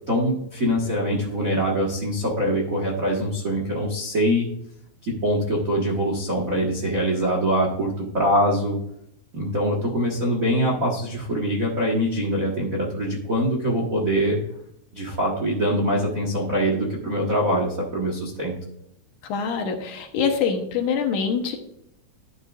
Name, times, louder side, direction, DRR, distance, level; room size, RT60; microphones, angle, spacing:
voice 1, 0.1-4.5 5.0-8.8 9.3-14.4 14.9-18.6, equal, 50° right, -1 dB, 1.0 m, -23 dB
voice 2, 19.3-21.6, left 6 dB, 70° left, 4 dB, 2.3 m, -24 dB
11.0 x 9.6 x 2.5 m, 0.72 s
omnidirectional pair, 4.0 m